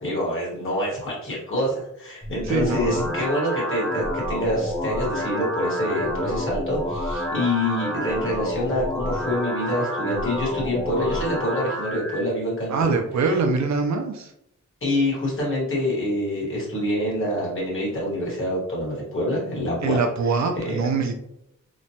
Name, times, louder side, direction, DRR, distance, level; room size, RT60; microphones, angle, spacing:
voice 1, 0.0-12.9 13.2-13.4 14.8-20.0 20.3-20.8, left 1 dB, 40° left, -5 dB, 1.2 m, -26 dB
sound 1, 2.2-12.2, equal, ahead, 0.6 m, -29 dB
voice 2, 2.5-3.1 12.7-14.3 19.8-21.1, right 4 dB, 65° right, 4 dB, 0.4 m, -23 dB
2.9 x 2.1 x 2.7 m, 0.78 s
wide cardioid pair, 175°, 31 cm